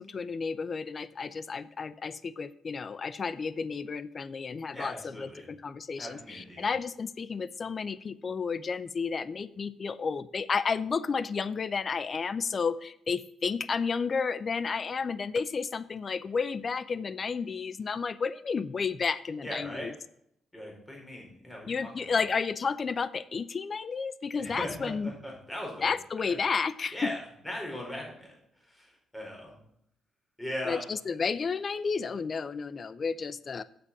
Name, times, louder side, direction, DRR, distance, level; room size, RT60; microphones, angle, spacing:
voice 1, 0.0-19.9 21.7-25.1 25.8-27.0 30.6-33.6, left 5 dB, 40° left, 17 dB, 0.6 m, -32 dB
voice 2, 4.7-5.5 6.0-6.7 19.4-19.9 20.5-22.2 24.4-25.9 26.2-26.3 26.9-28.4 28.7-29.5 30.4-30.8, left 1 dB, 10° left, -1 dB, 4.7 m, -39 dB
8.2 x 7.7 x 6.0 m, 0.71 s
cardioid pair, 90°, 0 cm